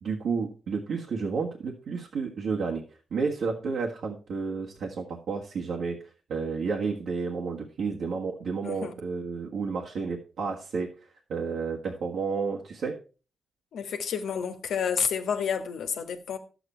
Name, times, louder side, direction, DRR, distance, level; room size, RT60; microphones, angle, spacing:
voice 1, 0.0-2.8 3.1-6.0 6.3-10.9 11.3-13.0, right 5 dB, 80° right, 1.6 m, -31 dB
voice 2, 8.6-8.9 13.7-16.4, left 7 dB, 90° left, 1.4 m, -30 dB
11.5 x 7.9 x 4.4 m
cardioid pair, 90°, 0 cm